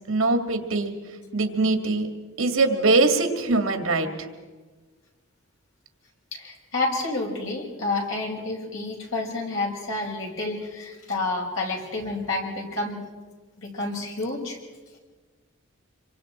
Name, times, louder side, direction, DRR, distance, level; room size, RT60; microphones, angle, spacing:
voice 1, 0.1-0.9 1.3-2.1 2.4-4.1, right 3 dB, 75° right, 5 dB, 2.2 m, -22 dB
voice 2, 6.3-13.0 13.6-14.6, left 2 dB, 65° left, -1 dB, 5.5 m, -29 dB
27.0 x 24.0 x 4.4 m, 1.3 s
head